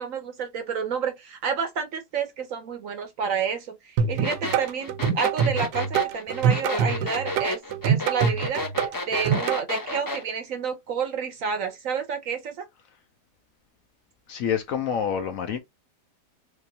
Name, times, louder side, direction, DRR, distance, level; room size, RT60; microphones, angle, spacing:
voice 1, 0.0-12.7, right 6 dB, 65° right, 0.9 m, -30 dB
sound 1, 4.0-9.6, right 7 dB, 80° right, 1.3 m, -24 dB
sound 2, 4.2-10.2, left 2 dB, 30° left, 0.4 m, -31 dB
voice 2, 14.3-15.6, left 8 dB, 65° left, 0.9 m, -27 dB
3.4 x 3.2 x 2.6 m
omnidirectional pair, 1.8 m